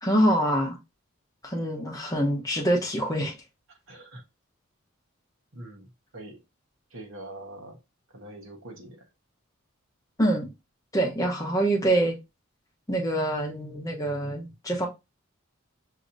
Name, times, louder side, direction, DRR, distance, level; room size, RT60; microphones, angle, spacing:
voice 1, 0.0-0.8 1.4-3.3 10.2-10.5 10.9-12.2 12.9-14.9, right 1 dB, 15° left, 0.9 m, -25 dB
voice 2, 3.9-4.2 5.5-6.4 6.9-7.8 8.1-9.0, right 1 dB, 65° right, 1.2 m, -43 dB
6.2 x 2.8 x 2.6 m
head